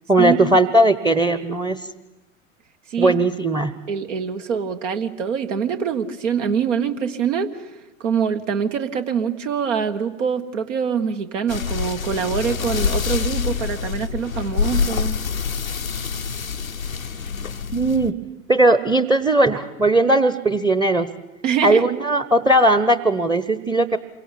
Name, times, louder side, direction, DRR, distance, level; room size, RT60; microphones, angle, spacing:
voice 1, 0.1-1.8 3.0-3.7 17.7-18.2 18.5-21.1 21.6-24.0, right 1 dB, 10° right, 12 dB, 1.0 m, -18 dB
voice 2, 3.9-7.6 8.0-15.2 21.4-21.9, right 7 dB, 65° right, 6 dB, 1.7 m, -24 dB
sound 1, 11.5-18.1, left 6 dB, 90° left, 0.9 m, -26 dB
27.5 x 23.5 x 8.9 m, 1.0 s
figure-of-eight pair, 85°, 40 cm